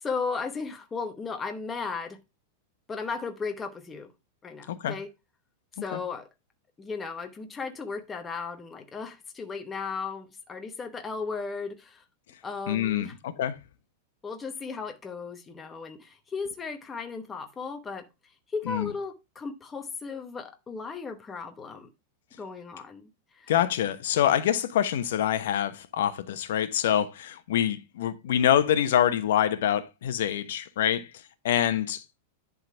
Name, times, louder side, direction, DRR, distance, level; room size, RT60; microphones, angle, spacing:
voice 1, 0.0-2.2 2.9-4.1 4.4-5.1 5.8-6.3 6.8-12.0 12.4-13.1 14.2-18.1 18.5-21.9 22.4-23.1 23.3-23.5, left 4 dB, 10° left, 0.9 m, -35 dB
voice 2, 12.7-13.5 18.7-18.9 23.5-31.1 31.4-32.0, left 10 dB, 70° left, 1.0 m, -25 dB
10.5 x 3.9 x 4.6 m
supercardioid pair, 165°, 0 cm